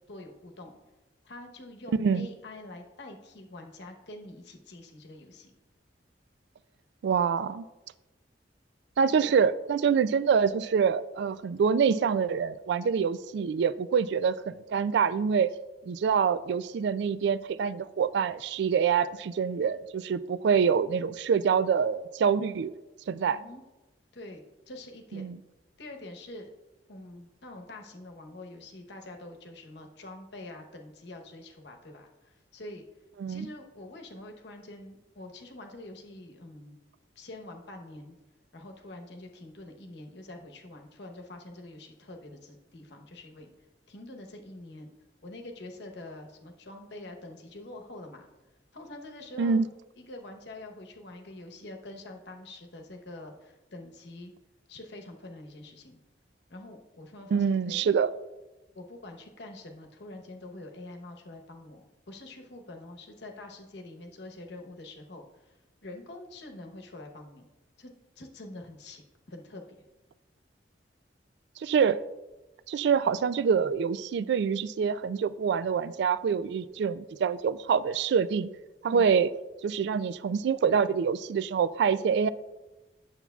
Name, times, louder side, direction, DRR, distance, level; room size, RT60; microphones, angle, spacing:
voice 1, 0.1-0.8 1.2-5.5 9.2-9.3 23.3-23.6 24.1-25.3 25.8-26.5 26.9-32.8 33.3-36.8 37.2-38.2 38.5-43.5 43.9-44.9 45.2-48.3 48.7-49.6 50.0-54.3 54.7-56.0 56.5-57.9 58.7-65.5 65.8-67.4 67.8-69.0 69.3-69.6 78.9-79.3, left 2 dB, 70° left, 1.0 m, -45 dB
voice 2, 7.0-7.7 9.0-15.5 15.9-22.7 23.1-23.4 25.1-25.4 33.2-33.5 49.4-49.7 57.3-58.1 71.6-72.0 72.7-78.5 78.8-79.3 79.6-82.3, right 6 dB, 70° right, 0.3 m, -26 dB
9.1 x 7.0 x 2.3 m
head